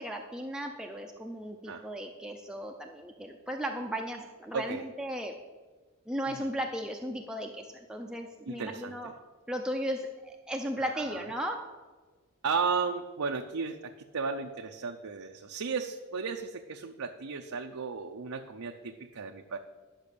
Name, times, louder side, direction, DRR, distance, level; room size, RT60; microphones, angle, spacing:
voice 1, 0.0-5.4 6.1-9.1 9.5-11.7, equal, 5° right, 2 dB, 0.6 m, -36 dB
voice 2, 4.5-4.9 6.3-6.5 8.5-9.1 10.9-11.2 12.4-19.6, right 5 dB, 70° right, 3 dB, 0.6 m, -34 dB
10.0 x 6.2 x 6.7 m, 1.3 s
head